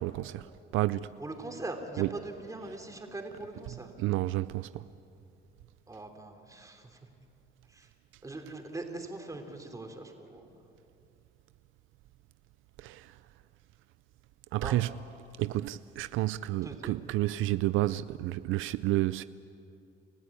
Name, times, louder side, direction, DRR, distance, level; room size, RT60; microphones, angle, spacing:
voice 1, 0.0-0.5 0.7-1.1 2.0-2.1 4.0-4.8 12.8-13.1 14.5-14.9 15.4-19.2, right 16 dB, 80° right, 0.5 m, -30 dB
voice 2, 1.2-3.9 5.9-7.1 7.7-7.9 8.2-10.5 14.6-14.7 16.6-17.0, right 2 dB, 15° right, 3.3 m, -41 dB
30.0 x 15.0 x 8.6 m
cardioid pair, 105°, 20 cm